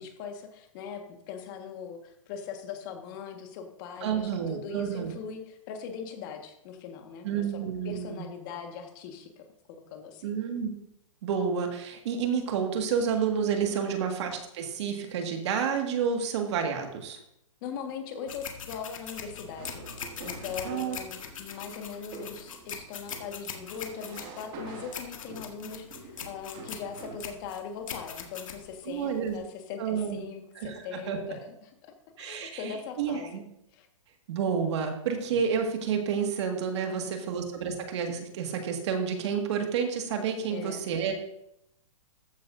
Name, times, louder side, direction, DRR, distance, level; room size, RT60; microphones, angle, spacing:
voice 1, 0.0-10.4 13.7-14.0 17.6-33.3 33.7-33.9 36.9-37.3 40.5-40.8, left 6 dB, 40° left, 4 dB, 1.6 m, -41 dB
voice 2, 4.0-5.1 7.2-8.2 10.2-10.7 11.2-17.2 20.7-21.0 28.9-29.4 29.8-30.2 30.6-31.2 32.2-32.6 33.0-33.4 34.3-41.1, right 7 dB, 55° right, 4 dB, 1.9 m, -30 dB
sound 1, 18.3-29.4, left 7 dB, 75° left, 1.8 m, -41 dB
sound 2, 19.5-27.3, right 3 dB, 35° right, 2.3 m, -47 dB
14.0 x 9.3 x 2.7 m, 0.78 s
hypercardioid pair, 140°, 17 cm